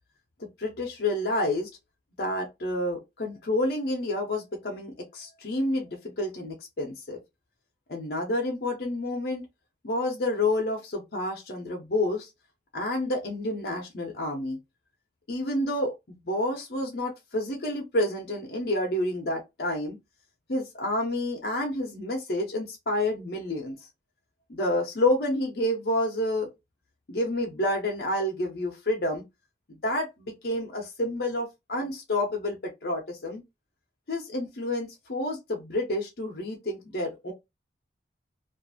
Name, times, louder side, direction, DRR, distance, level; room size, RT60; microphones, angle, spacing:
voice 1, 0.6-1.7 2.2-7.2 7.9-9.4 9.8-12.3 12.7-14.6 15.3-20.0 20.5-23.8 24.5-26.5 27.1-29.2 29.8-33.4 34.1-37.3, left 1 dB, 60° left, 0.6 m, -29 dB
2.5 x 2.3 x 2.5 m
head